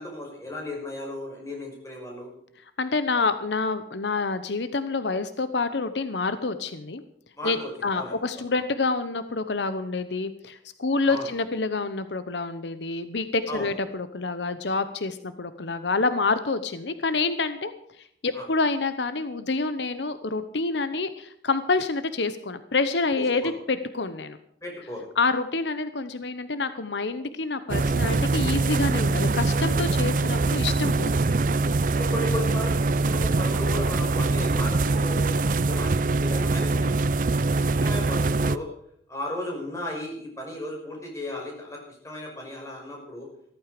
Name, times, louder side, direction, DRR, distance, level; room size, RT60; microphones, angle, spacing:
voice 1, 0.0-2.3 7.4-8.2 11.1-11.3 13.5-13.7 18.3-18.4 23.2-23.5 24.6-25.1 31.9-36.9 37.5-38.7 39.1-43.3, left 1 dB, 15° left, 0 dB, 5.6 m, -35 dB
voice 2, 2.8-7.0 7.4-24.4 25.2-31.1, left 3 dB, 80° left, 12 dB, 0.9 m, -27 dB
sound 1, 27.7-38.6, right 3 dB, 50° right, 0.5 m, -23 dB
15.0 x 14.0 x 5.1 m, 0.67 s
head